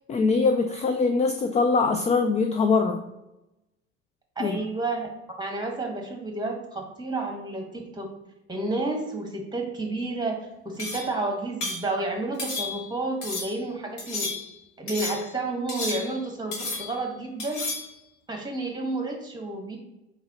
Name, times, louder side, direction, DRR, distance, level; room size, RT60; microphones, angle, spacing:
voice 1, 0.1-3.0 4.4-4.6, left 4 dB, 20° left, 6 dB, 0.4 m, -22 dB
voice 2, 4.3-5.1 5.4-8.1 8.5-10.4 10.6-14.3 14.8-17.6 18.3-19.8, right 2 dB, 15° right, 2 dB, 1.3 m, -30 dB
sound 1, 10.8-11.2 11.6-11.9 12.4-12.9 13.2-13.6 14.0-14.6 14.9-15.3 15.7-16.3 16.5-17.0 17.4-17.9, left 3 dB, 60° left, 1.6 m, -33 dB
4.0 x 4.0 x 2.8 m, 0.94 s
hypercardioid pair, 65°, 33 cm